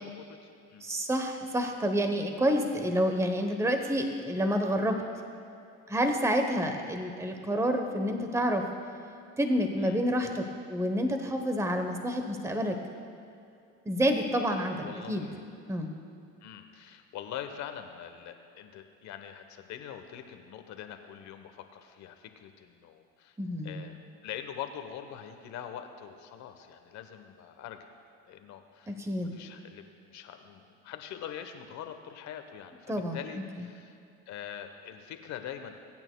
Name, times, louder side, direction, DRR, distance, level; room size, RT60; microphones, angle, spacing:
voice 1, 0.0-0.9 9.8-10.0 14.8-15.5 16.4-23.4 23.6-24.0 24.2-27.9 28.3-34.0 34.3-35.8, left 9 dB, 60° left, 7 dB, 1.1 m, -43 dB
voice 2, 0.8-5.0 5.9-8.6 9.4-12.8 13.9-15.3 15.7-15.9 23.4-23.8 28.9-29.3 32.9-33.2 33.6-33.7, equal, 10° right, 5 dB, 1.0 m, -28 dB
22.5 x 8.9 x 2.3 m, 2.6 s
supercardioid pair, 95°, 32 cm